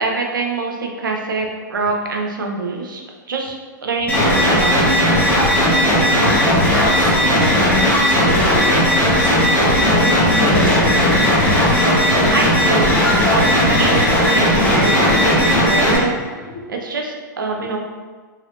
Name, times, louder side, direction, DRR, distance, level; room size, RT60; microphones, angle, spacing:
voice 1, 0.0-3.0 3.3-3.5 3.8-4.8 11.7-13.0 13.3-16.2 16.7-17.8, right 3 dB, 80° right, 1 dB, 0.6 m, -24 dB
sound 1, 4.1-16.0, equal, 15° left, 0.9 m, -15 dB
voice 2, 6.4-8.9 9.1-12.0 14.7-15.3 16.4-16.7 17.6-17.7, left 3 dB, 75° left, -4 dB, 1.1 m, -27 dB
3.3 x 2.9 x 2.5 m, 1.5 s
hypercardioid pair, 110°, 11 cm